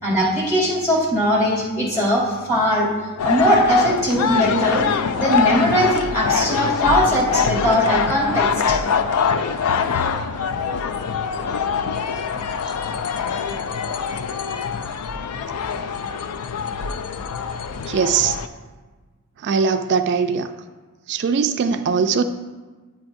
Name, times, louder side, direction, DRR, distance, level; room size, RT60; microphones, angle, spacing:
voice 1, 0.0-2.9 3.2-4.8 5.2-8.8, equal, 30° left, -5 dB, 2.7 m, -20 dB
sound 1, 3.2-18.5, left 6 dB, 80° left, 0.4 m, -24 dB
voice 2, 17.9-18.4 19.4-20.5 21.1-22.2, right 6 dB, 50° right, 8 dB, 0.3 m, -20 dB
9.8 x 8.6 x 2.6 m, 1.3 s
head